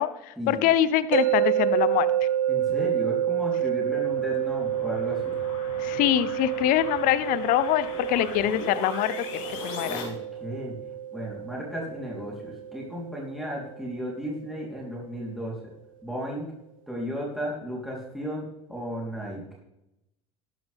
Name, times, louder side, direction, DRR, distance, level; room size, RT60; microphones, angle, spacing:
voice 1, 0.0-2.1 5.8-10.0, left 12 dB, 55° left, 15 dB, 0.8 m, -24 dB
sound 1, 1.1-14.2, right 11 dB, 80° right, 0.4 m, -29 dB
voice 2, 2.5-5.4 9.9-10.8 11.1-15.6 16.0-16.5 16.9-19.4, equal, ahead, -4 dB, 3.9 m, -34 dB
sound 2, 3.5-10.0, left 4 dB, 75° left, 3.9 m, -40 dB
13.0 x 11.5 x 3.6 m, 0.89 s
hypercardioid pair, 80°, 17 cm